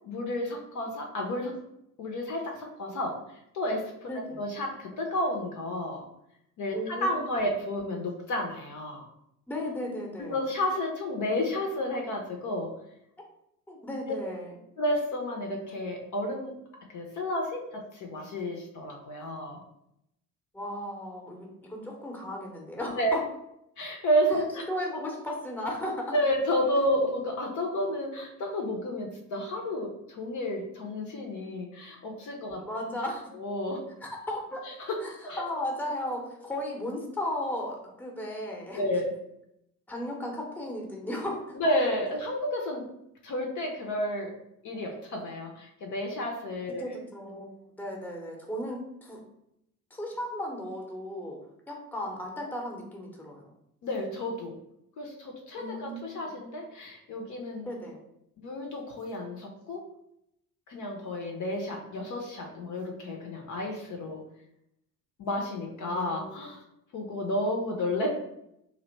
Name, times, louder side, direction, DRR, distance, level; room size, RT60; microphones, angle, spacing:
voice 1, 0.0-1.6 2.0-3.2 3.5-6.0 6.6-9.1 10.2-12.7 14.8-16.5 16.9-19.6 23.0-23.1 23.8-24.6 26.1-32.6 33.3-33.8 34.6-35.0 35.3-35.4 38.7-39.1 41.6-42.9 43.2-44.3 44.6-46.8 53.8-54.6 55.0-57.7 58.4-59.8 60.7-64.2 65.2-66.6 66.9-68.1, left 1 dB, 45° left, 1 dB, 0.7 m, -31 dB
voice 2, 4.1-4.4 6.7-7.2 9.5-10.4 13.7-14.5 20.5-23.2 24.7-26.1 32.6-33.3 34.0-34.7 35.0-38.8 39.9-41.6 46.8-49.2 49.9-53.5 55.6-56.3 57.6-58.0 65.8-66.4 67.7-67.8, left 1 dB, 5° left, 0 dB, 0.8 m, -35 dB
2.8 x 2.1 x 3.9 m, 0.79 s
figure-of-eight pair, 50°, 43 cm